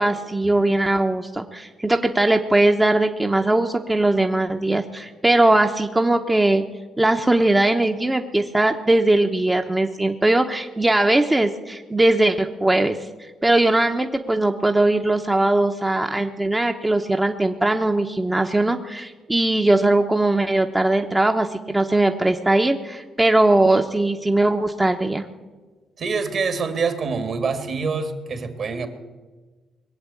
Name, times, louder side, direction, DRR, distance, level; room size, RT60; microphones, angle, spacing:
voice 1, 0.0-6.6 7.0-13.0 13.4-25.2, right 2 dB, 15° right, 4 dB, 0.8 m, -20 dB
voice 2, 26.0-28.9, right 4 dB, 55° right, 8 dB, 2.0 m, -25 dB
20.5 x 7.9 x 8.4 m, 1.3 s
cardioid pair, 90°, 0 cm